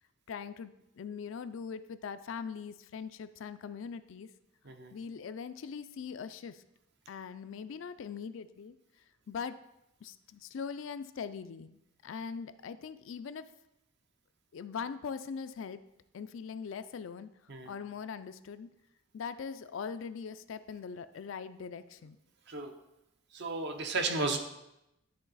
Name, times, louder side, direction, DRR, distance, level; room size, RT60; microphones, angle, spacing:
voice 1, 0.3-4.3 4.9-6.6 7.1-8.8 9.3-9.6 10.0-11.8 12.0-13.5 14.5-15.8 16.1-17.3 17.7-18.7 19.1-22.2, left 6 dB, 65° left, 12 dB, 0.4 m, -41 dB
voice 2, 23.3-24.4, right 3 dB, 55° right, 5 dB, 0.8 m, -33 dB
10.5 x 3.9 x 4.0 m, 0.88 s
head